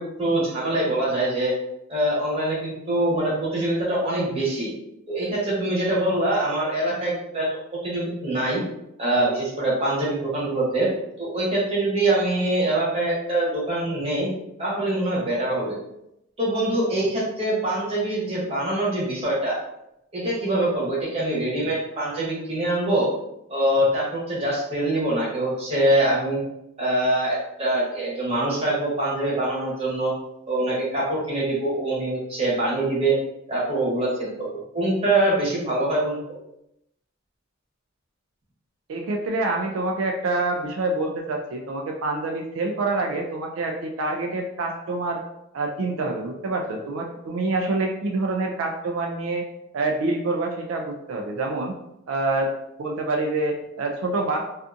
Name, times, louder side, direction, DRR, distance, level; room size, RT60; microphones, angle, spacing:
voice 1, 0.0-1.5 1.9-4.7 5.1-7.5 7.8-8.6 9.0-10.9 11.2-14.3 14.6-15.8 16.4-19.6 20.1-23.1 23.5-26.4 26.8-30.1 30.5-33.1 33.5-36.2, right 1 dB, 30° right, -6 dB, 0.9 m, -24 dB
voice 2, 38.9-45.2 45.5-49.5 49.7-51.7 52.1-52.5 52.8-54.5, right 2 dB, 80° right, 2 dB, 0.3 m, -26 dB
2.5 x 2.4 x 2.5 m, 0.83 s
head